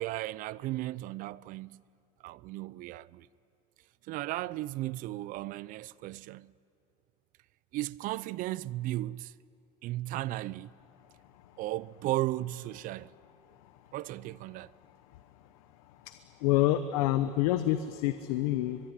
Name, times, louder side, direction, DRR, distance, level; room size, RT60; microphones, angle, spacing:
voice 1, 0.0-1.8 2.2-3.3 4.0-6.5 7.7-9.3 9.8-10.7 11.6-13.1 13.9-14.7, right 16 dB, 50° right, 0.5 m, -35 dB
voice 2, 16.4-18.8, left 14 dB, 85° left, 1.0 m, -27 dB
23.0 x 22.5 x 9.9 m
cardioid pair, 135°, 18 cm